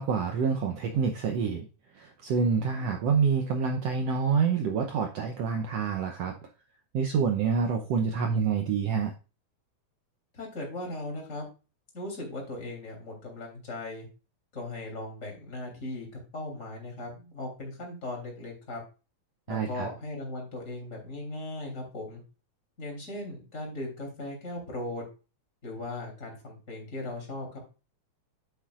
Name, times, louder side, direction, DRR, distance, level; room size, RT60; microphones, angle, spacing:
voice 1, 0.0-1.7 2.0-6.4 6.9-9.1 19.5-19.9, right 6 dB, 70° right, 4 dB, 1.7 m, -27 dB
voice 2, 10.3-11.5 11.9-14.1 14.5-18.8 19.5-22.2 22.8-25.0 25.6-27.6, left 2 dB, 25° left, 1 dB, 3.4 m, -38 dB
9.2 x 8.0 x 2.4 m, 0.32 s
omnidirectional pair, 3.4 m